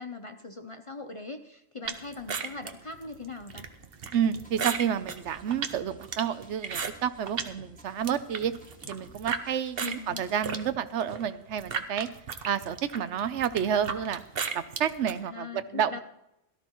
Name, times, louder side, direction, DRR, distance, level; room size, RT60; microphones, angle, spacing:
voice 1, 0.0-3.7 9.8-10.2 15.2-16.0, left 3 dB, 40° left, 7 dB, 0.5 m, -41 dB
sound 1, 1.9-7.5 7.9-9.4 9.8-15.2, right 6 dB, 55° right, 1.1 m, -35 dB
sound 2, 4.0-10.7, left 1 dB, 5° left, 1.7 m, -55 dB
voice 2, 4.1-8.5 8.9-12.1 12.4-14.2 14.5-16.0, right 8 dB, 75° right, 13 dB, 1.0 m, -30 dB
17.0 x 13.0 x 3.0 m, 0.86 s
omnidirectional pair, 1.2 m